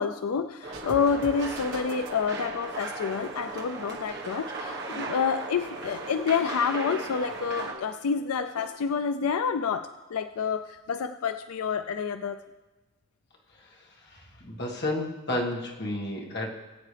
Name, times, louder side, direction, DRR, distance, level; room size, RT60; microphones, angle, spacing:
voice 1, 0.0-12.4, left 6 dB, 90° left, 10 dB, 0.4 m, -28 dB
sound 1, 0.6-7.7, right 3 dB, 50° right, 1.3 m, -37 dB
sound 2, 0.7-2.2 4.9-8.0 8.3-8.7, right 2 dB, 80° right, 1.5 m, -45 dB
voice 2, 14.1-16.5, left 1 dB, 50° left, -1 dB, 1.7 m, -31 dB
20.5 x 8.3 x 3.3 m, 1.1 s
head